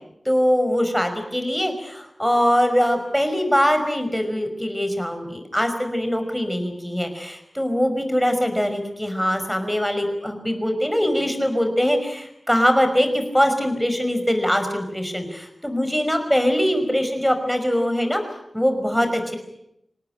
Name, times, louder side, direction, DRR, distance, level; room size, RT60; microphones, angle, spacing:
voice 1, 0.3-18.2 18.5-19.4, equal, ahead, 6 dB, 5.4 m, -22 dB
27.0 x 18.5 x 9.0 m, 0.79 s
wide cardioid pair, 90°, 0 cm